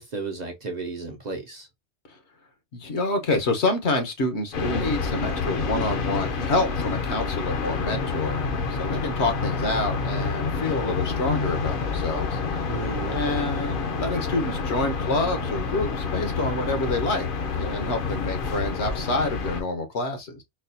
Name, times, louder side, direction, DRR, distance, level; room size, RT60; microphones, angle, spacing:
voice 1, 0.0-1.7 12.7-13.5, right 3 dB, 45° right, 0.7 m, -34 dB
voice 2, 2.7-8.4 8.7-12.4 13.1-17.3 17.6-20.4, left 2 dB, 70° left, 1.2 m, -27 dB
sound 1, 4.5-19.6, left 4 dB, 55° left, 0.8 m, -28 dB
4.0 x 2.3 x 2.6 m
omnidirectional pair, 1.2 m